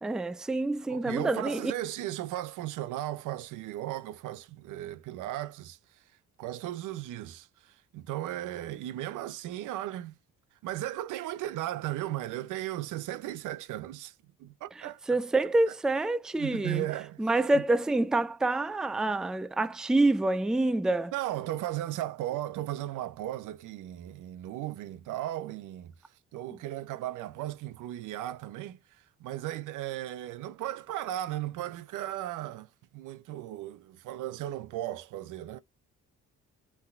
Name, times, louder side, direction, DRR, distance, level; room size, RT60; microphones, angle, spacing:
voice 1, 0.0-1.7 14.8-16.8 17.2-21.1, right 2 dB, ahead, 0.3 m, -27 dB
voice 2, 0.9-5.8 6.4-10.1 10.6-14.1 14.4-15.0 16.4-17.3 17.5-17.6 21.1-25.9 26.3-28.8 29.2-32.7 32.9-35.6, right 14 dB, 85° right, 0.6 m, -36 dB
5.5 x 3.3 x 2.4 m
cardioid pair, 90°, 30 cm